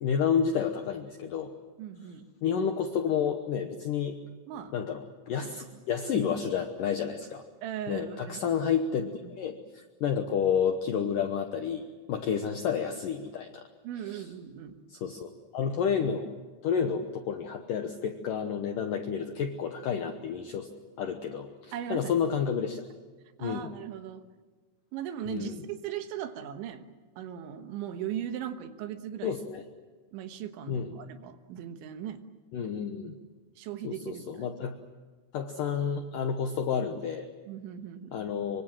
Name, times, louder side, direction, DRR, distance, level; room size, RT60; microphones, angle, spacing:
voice 1, 0.0-1.5 2.4-4.2 4.7-7.4 7.9-9.0 9.4-13.6 14.0-14.3 14.9-16.3 16.6-20.7 21.0-22.8 23.4-23.7 25.3-25.6 29.2-29.6 30.7-30.9 32.5-33.2 33.8-34.7 35.3-37.3 38.1-38.6, left 7 dB, 80° left, 6 dB, 1.9 m, -30 dB
voice 2, 1.8-2.3 4.5-4.7 5.4-5.5 6.1-6.3 7.6-8.4 9.0-9.3 13.8-14.8 21.7-22.1 23.4-24.3 24.9-26.9 27.2-29.4 30.1-32.2 33.6-34.5 37.5-38.2, right 10 dB, 75° right, 8 dB, 3.6 m, -38 dB
24.5 x 24.5 x 7.5 m, 1.4 s
omnidirectional pair, 5.5 m